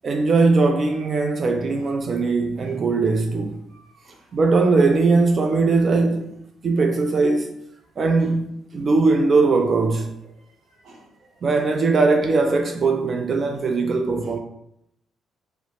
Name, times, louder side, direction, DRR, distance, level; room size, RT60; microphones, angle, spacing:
voice 1, 0.0-3.6 4.3-6.3 6.6-7.5 8.0-10.1 11.4-14.4, right 3 dB, 45° right, 0.3 m, -20 dB
voice 2, 3.7-4.3 8.2-8.3 10.7-11.6 14.2-14.3, right 2 dB, 70° right, 0.9 m, -50 dB
2.8 x 2.0 x 2.8 m
cardioid pair, 90°, 0 cm